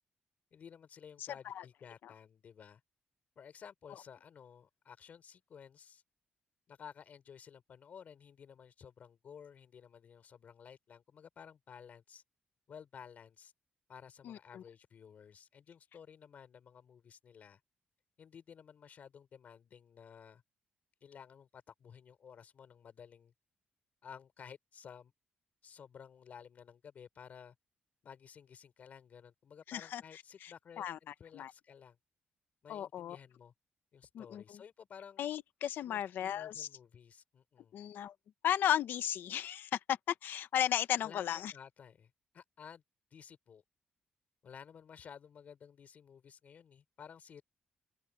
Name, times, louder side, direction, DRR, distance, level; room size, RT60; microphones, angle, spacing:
voice 1, 0.5-2.8 3.4-6.0 6.7-12.2 12.7-13.5 13.9-17.6 18.2-20.4 21.0-23.3 24.0-25.1 25.6-27.5 28.0-32.0 32.6-33.5 33.9-35.3 35.8-37.8 41.0-42.8 43.1-43.6 44.4-47.4, left 7 dB, 50° left, 4.4 m, -54 dB
voice 2, 14.2-14.6 29.7-30.0 30.4-31.5 32.7-33.2 34.1-34.6 35.2-36.7 37.7-38.1 38.4-41.5, left 10 dB, 80° left, 1.0 m, -35 dB
open air
wide cardioid pair, 165°, 3 cm